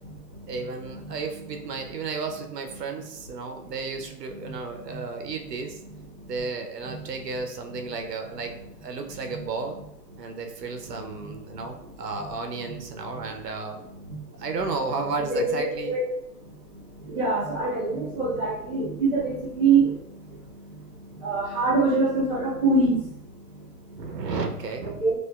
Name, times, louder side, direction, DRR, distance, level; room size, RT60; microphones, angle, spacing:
voice 1, 0.5-5.8 6.2-8.5 8.8-9.7 10.2-13.9 14.4-15.9 18.2-18.4 24.0-25.0, right 4 dB, 75° right, 5 dB, 0.7 m, -33 dB
voice 2, 17.0-19.9 21.2-23.0 25.0-25.1, right 3 dB, 5° right, -9 dB, 1.0 m, -24 dB
4.3 x 2.5 x 2.2 m, 0.79 s
hypercardioid pair, 165°, 49 cm